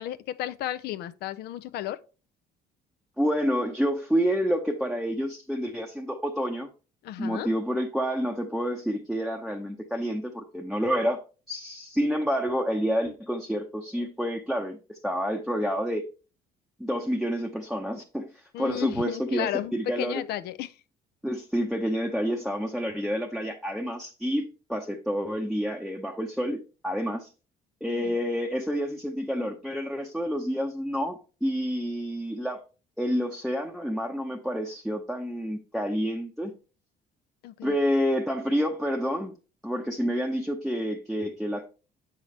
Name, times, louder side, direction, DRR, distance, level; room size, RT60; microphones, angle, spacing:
voice 1, 0.0-2.0 7.0-7.5 18.5-20.7 27.9-28.2 37.4-37.8, left 12 dB, 75° left, 0.5 m, -33 dB
voice 2, 3.2-6.7 7.2-11.2 11.5-16.0 16.8-18.3 18.6-20.2 21.2-27.3 27.8-32.6 33.0-36.5 37.6-39.4 39.6-41.6, equal, ahead, 0.7 m, -28 dB
7.3 x 5.7 x 3.2 m
cardioid pair, 110°, 17 cm